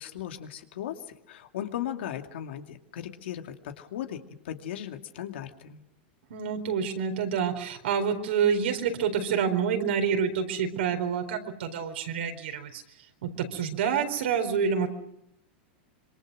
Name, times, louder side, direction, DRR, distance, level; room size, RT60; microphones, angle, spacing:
voice 1, 0.0-5.8, left 10 dB, 75° left, 5 dB, 2.4 m, -37 dB
voice 2, 6.3-12.8 13.2-14.9, right 7 dB, 80° right, 5 dB, 4.3 m, -27 dB
26.0 x 23.5 x 6.3 m, 0.81 s
supercardioid pair, 140°, 6 cm